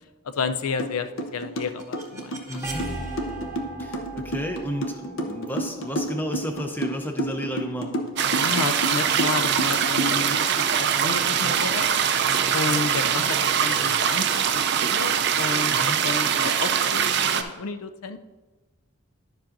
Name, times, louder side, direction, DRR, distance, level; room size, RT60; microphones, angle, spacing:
voice 1, 0.2-2.6 8.4-11.9 12.5-18.2, left 4 dB, 80° left, 10 dB, 0.5 m, -31 dB
sound 1, 0.8-0.9 1.2-10.4, equal, 60° left, 0.8 m, -29 dB
sound 2, 1.2-7.1, right 2 dB, 10° right, 0.9 m, -38 dB
voice 2, 2.5-2.8 3.8-7.9 15.7-16.0, equal, 10° left, 4 dB, 0.6 m, -32 dB
sound 3, 8.2-17.4, right 8 dB, 50° right, 0.4 m, -23 dB
10.5 x 7.3 x 2.6 m, 1.2 s
head